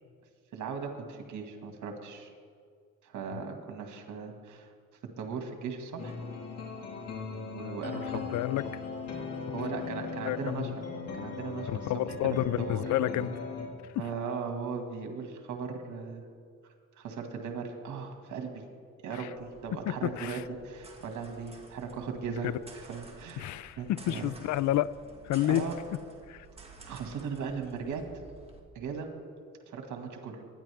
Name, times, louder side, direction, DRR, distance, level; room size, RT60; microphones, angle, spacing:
voice 1, 0.5-2.3 3.0-4.7 5.2-6.1 7.5-8.3 9.5-10.8 11.2-12.2 12.6-12.8 14.0-16.2 16.9-18.6 19.0-24.3 25.5-25.7 26.9-28.0 28.7-29.1 29.7-30.5, right 5 dB, 75° right, 4 dB, 2.1 m, -38 dB
sound 1, 6.0-13.7, left 5 dB, 55° left, 2.2 m, -38 dB
voice 2, 7.9-8.8 10.2-10.8 11.7-13.3 19.1-19.3 19.7-20.4 22.4-22.6 23.4-24.9 25.2-25.7 26.3-26.5, left 13 dB, 70° left, 18 dB, 0.5 m, -30 dB
Metall Cell, 19.3-28.6, right 3 dB, 20° right, 2.1 m, -52 dB
23.0 x 10.5 x 3.5 m, 2.1 s
cardioid pair, 90°, 30 cm